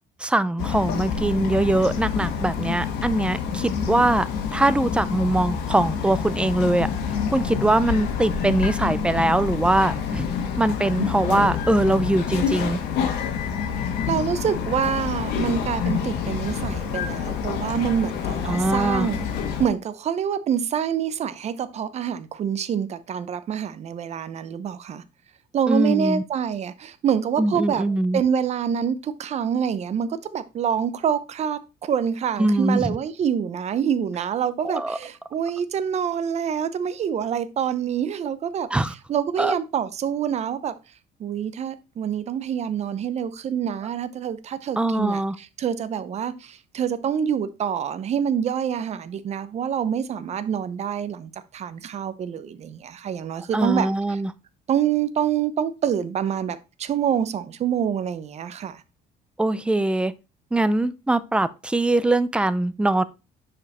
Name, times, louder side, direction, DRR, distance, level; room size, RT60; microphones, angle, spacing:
voice 1, 0.2-6.9 7.3-10.3 10.6-12.8 18.5-19.1 25.7-26.2 27.4-28.2 32.4-33.0 34.6-35.0 38.7-38.9 39.4-39.5 44.8-45.4 53.5-54.3 59.4-60.1 60.5-63.0, right 2 dB, 5° right, 0.5 m, -22 dB
Bird vocalization bird call bird song, 0.6-19.7, left 7 dB, 80° left, 1.7 m, -27 dB
voice 2, 14.1-19.3 19.6-25.0 25.5-27.8 28.1-38.7 39.1-40.7 41.2-53.9 54.7-58.8, right 8 dB, 40° right, 0.8 m, -26 dB
6.6 x 5.2 x 4.2 m
cardioid pair, 125°, 17 cm